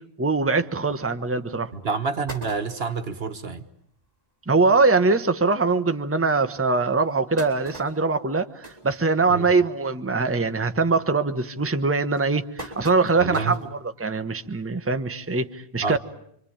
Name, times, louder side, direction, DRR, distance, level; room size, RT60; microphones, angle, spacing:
voice 1, 0.2-1.7 4.5-16.0, right 3 dB, 15° right, 1.0 m, -22 dB
sound 1, 1.1-1.2 1.7-1.8 2.0-3.1 3.7-3.8 4.0-4.1 4.5-4.6 5.3-5.4 6.0-6.1 6.8-9.6 10.0-10.3 10.7-11.1 11.7-13.7 14.2-14.3 15.4-15.5, right 1 dB, 35° right, 4.6 m, -41 dB
voice 2, 1.7-3.6 9.3-9.5 13.2-13.6 15.8-16.0, right 4 dB, 65° right, 1.6 m, -28 dB
27.0 x 25.0 x 8.7 m
omnidirectional pair, 1.1 m